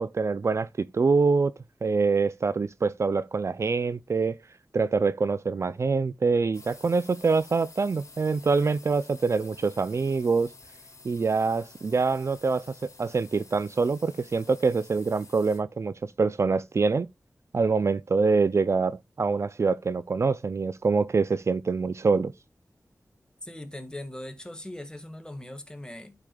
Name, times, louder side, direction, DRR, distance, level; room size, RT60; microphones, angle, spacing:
voice 1, 0.0-1.5 1.8-4.4 4.7-10.5 11.0-17.1 17.5-22.3, right 4 dB, 55° right, 0.4 m, -25 dB
sound 1, 6.5-15.6, left 3 dB, 65° left, 2.4 m, -51 dB
voice 2, 23.4-26.1, left 1 dB, 15° left, 1.7 m, -40 dB
12.0 x 5.0 x 2.3 m
cardioid pair, 55°, 6 cm